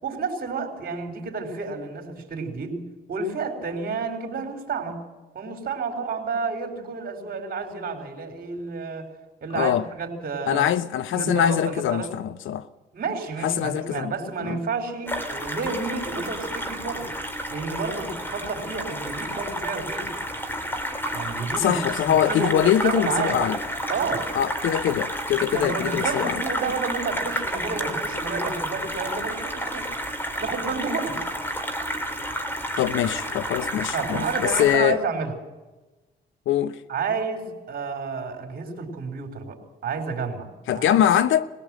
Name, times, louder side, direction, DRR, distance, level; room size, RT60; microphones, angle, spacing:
voice 1, 0.0-2.8 3.1-5.0 5.3-9.1 9.4-10.7 11.1-12.2 12.9-17.1 17.5-20.1 21.1-21.8 22.1-23.4 23.9-24.3 25.5-29.9 30.4-31.2 33.9-35.3 36.9-40.5 40.7-41.0, right 4 dB, 50° right, 4.4 m, -30 dB
voice 2, 9.5-9.9 10.5-12.7 13.4-14.1 14.4-14.6 21.6-23.6 24.4-26.4 32.8-35.0 36.5-36.8 40.7-41.5, left 10 dB, 80° left, 0.9 m, -23 dB
sound 1, 15.1-34.8, equal, 10° left, 3.0 m, -30 dB
21.0 x 16.5 x 7.7 m
cardioid pair, 90°, 20 cm